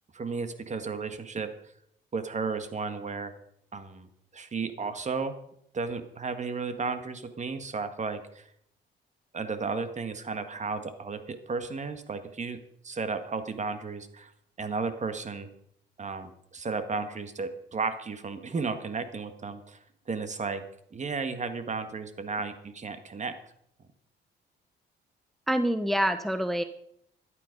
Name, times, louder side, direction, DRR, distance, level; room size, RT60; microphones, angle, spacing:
voice 1, 0.1-1.5 2.1-3.3 3.7-4.1 4.3-5.4 5.7-8.5 9.3-12.6 12.8-14.3 14.6-15.5 16.0-19.8 20.1-20.6 20.9-23.4, right 4 dB, 35° right, 9 dB, 1.7 m, -33 dB
voice 2, 25.5-26.6, equal, ahead, 10 dB, 0.8 m, -26 dB
13.5 x 11.0 x 5.3 m, 0.72 s
cardioid pair, 90°, 20 cm